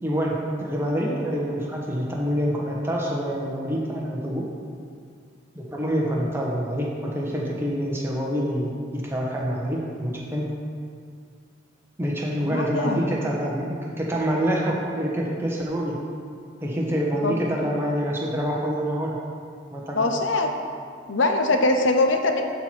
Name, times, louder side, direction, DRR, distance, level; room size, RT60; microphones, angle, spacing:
voice 1, 0.0-4.4 5.5-10.4 12.0-16.0 16.6-19.2 19.7-20.2, equal, 10° right, -3 dB, 1.1 m, -26 dB
voice 2, 12.4-13.0 17.2-17.4 20.0-20.5 21.1-22.4, left 2 dB, 65° left, 4 dB, 0.8 m, -22 dB
11.5 x 4.4 x 4.5 m, 2.2 s
head